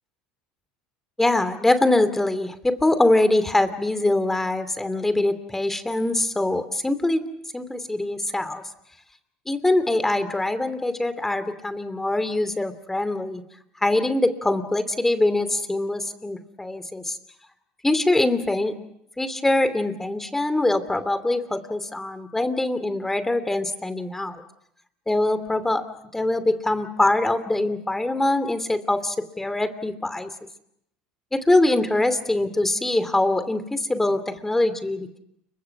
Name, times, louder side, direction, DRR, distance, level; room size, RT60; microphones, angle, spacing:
voice 1, 1.2-7.2 7.5-8.6 9.5-13.4 13.8-17.2 17.8-18.7 19.2-24.4 25.1-25.8 26.1-30.3 31.3-35.2, left 2 dB, 10° left, 11 dB, 2.8 m, -23 dB
29.5 x 24.5 x 6.0 m, 0.77 s
hypercardioid pair, 80°, 3 cm